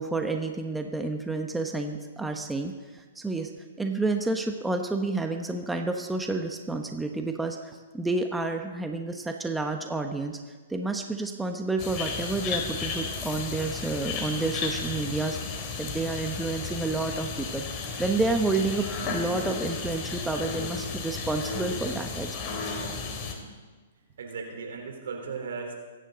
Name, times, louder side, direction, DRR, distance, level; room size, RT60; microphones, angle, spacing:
voice 1, 0.0-3.5 3.8-10.4 10.7-15.4 15.8-17.6 18.0-22.5, right 3 dB, 5° right, 4 dB, 1.1 m, -30 dB
sound 1, 11.8-23.3, left 4 dB, 35° left, 2.8 m, -34 dB
voice 2, 23.0-23.5 23.9-25.7, right 5 dB, 70° right, 2 dB, 3.9 m, -38 dB
24.5 x 10.5 x 4.0 m, 1.4 s
hypercardioid pair, 125°, 0 cm